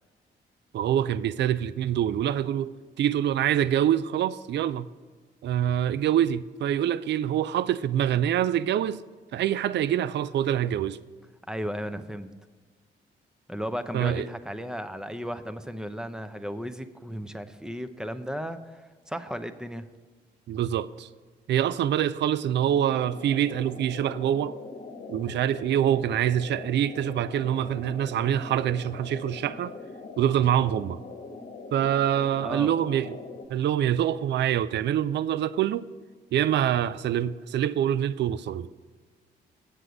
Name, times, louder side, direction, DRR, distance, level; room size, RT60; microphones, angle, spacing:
voice 1, 0.7-4.9 5.4-9.0 9.3-11.0 13.9-14.2 20.5-21.1 21.5-24.6 25.1-29.7 30.2-31.0 31.7-33.2 33.5-35.8 36.3-38.7, right 10 dB, 65° right, 0.4 m, -25 dB
voice 2, 11.5-12.3 13.5-19.9 32.4-32.7, equal, 5° right, 0.7 m, -35 dB
sound 1, 22.6-33.5, left 3 dB, 45° left, 1.1 m, -42 dB
8.1 x 7.6 x 5.0 m
supercardioid pair, 60°, 20 cm